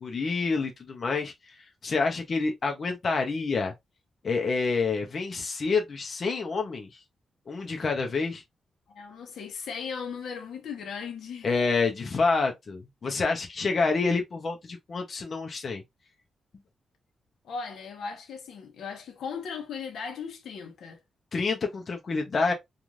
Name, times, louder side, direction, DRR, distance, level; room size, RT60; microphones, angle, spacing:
voice 1, 0.0-3.7 4.2-7.0 7.5-8.4 11.4-15.8 21.3-22.5, left 4 dB, 40° left, 0.6 m, -28 dB
voice 2, 8.9-11.5 17.4-21.0, left 6 dB, 85° left, 0.8 m, -37 dB
3.1 x 2.4 x 2.4 m
wide cardioid pair, 150°, 0 cm